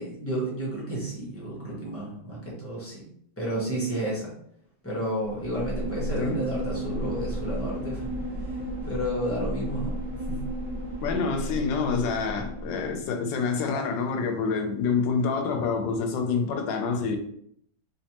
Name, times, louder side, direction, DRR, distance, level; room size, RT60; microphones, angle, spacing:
voice 1, 0.0-3.0 3.4-4.3 4.8-8.1 8.4-8.6 8.8-10.0 10.3-10.4 12.6-12.8, right 1 dB, 15° left, 0.6 m, -31 dB
sound 1, 5.2-13.1, equal, 65° right, 0.8 m, -33 dB
voice 2, 11.0-17.2, left 5 dB, 75° left, 1.2 m, -27 dB
3.4 x 3.0 x 2.9 m
omnidirectional pair, 2.2 m